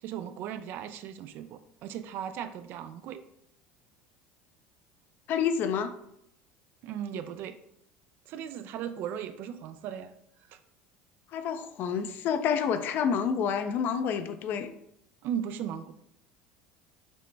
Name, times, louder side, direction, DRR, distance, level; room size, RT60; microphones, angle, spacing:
voice 1, 0.0-3.2 6.8-7.6 8.3-10.1 10.5-10.6 15.2-15.9, right 9 dB, 60° right, 10 dB, 0.4 m, -37 dB
voice 2, 5.3-5.9 11.3-14.7, left 7 dB, 55° left, 9 dB, 0.4 m, -28 dB
6.1 x 2.1 x 3.2 m, 0.75 s
hypercardioid pair, 80°, 4 cm